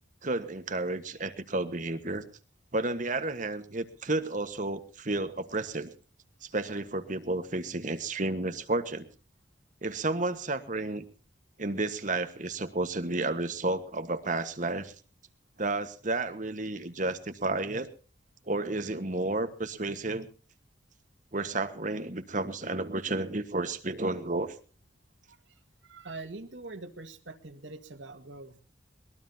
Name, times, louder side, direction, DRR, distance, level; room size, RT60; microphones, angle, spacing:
voice 1, 0.2-2.2 2.7-5.9 6.4-9.1 9.8-11.0 11.6-14.9 15.6-17.9 18.5-20.3 21.3-24.5, right 2 dB, 45° right, 10 dB, 1.4 m, -31 dB
voice 2, 25.3-28.6, right 3 dB, 85° right, 6 dB, 2.0 m, -44 dB
22.5 x 20.5 x 2.8 m, 0.39 s
head